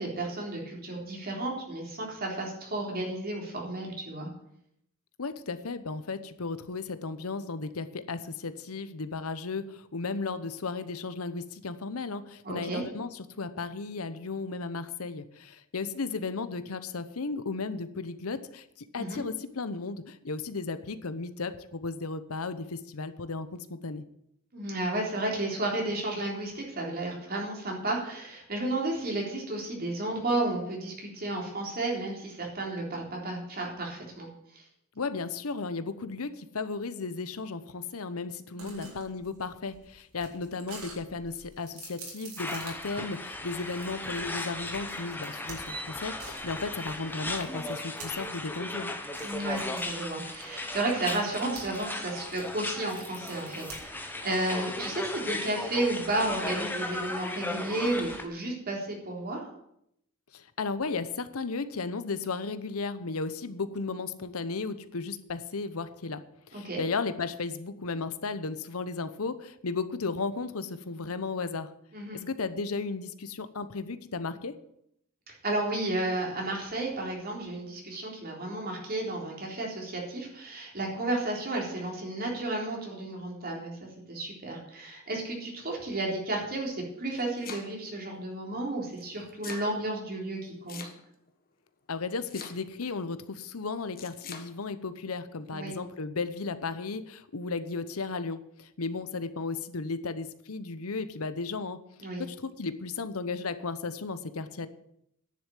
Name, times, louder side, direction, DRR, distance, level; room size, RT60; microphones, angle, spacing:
voice 1, 0.0-4.3 12.4-12.8 19.0-19.2 24.5-34.3 38.6-38.9 49.2-59.5 66.5-66.8 71.9-72.2 75.3-90.8 95.5-95.8 102.0-102.2, right 2 dB, 45° right, -1 dB, 3.8 m, -32 dB
voice 2, 5.2-24.0 35.0-48.9 60.3-66.2 66.5-71.7 72.3-74.5 91.9-101.8 102.2-104.7, left 4 dB, 80° left, 13 dB, 0.9 m, -35 dB
sound 1, 38.6-48.5 49.1-51.8 52.1-54.1, right 4 dB, 85° right, 4.1 m, -48 dB
sound 2, 42.4-58.2, left 1 dB, 10° left, 1.2 m, -36 dB
Domestic sounds home sounds, 86.9-88.0 89.0-89.7 90.7-91.3 92.2-92.9 94.0-94.5, left 6 dB, 45° left, 1.4 m, -43 dB
10.5 x 7.0 x 9.2 m, 0.74 s
head